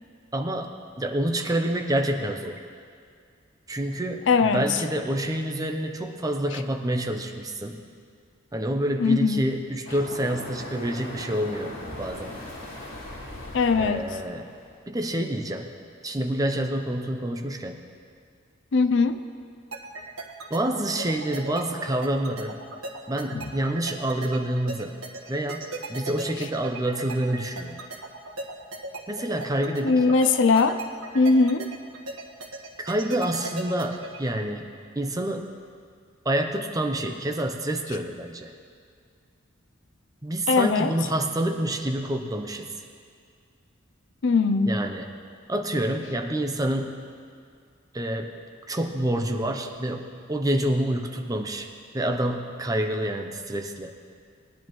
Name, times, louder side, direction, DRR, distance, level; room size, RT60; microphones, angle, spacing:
voice 1, 0.3-0.7 1.0-2.6 3.7-7.8 8.5-12.4 13.8-14.5 14.9-15.7 16.0-17.8 20.5-22.6 23.1-25.0 25.3-27.8 29.1-30.2 32.8-34.7 35.0-35.5 36.2-38.5 40.2-42.7 44.7-45.1 45.5-47.1 47.9-48.3 48.7-53.9, right 1 dB, 15° right, 4 dB, 0.6 m, -28 dB
voice 2, 4.3-4.7 9.0-9.4 13.5-14.1 18.7-19.2 23.3-23.4 29.8-30.8 31.1-31.7 40.5-40.9 44.2-44.8, left 4 dB, 60° left, 10 dB, 0.5 m, -20 dB
sound 1, 9.8-14.8, left 1 dB, 80° left, 3.2 m, -39 dB
sound 2, 19.7-34.4, right 2 dB, 90° right, 1.3 m, -37 dB
20.0 x 10.5 x 3.1 m, 2.2 s
head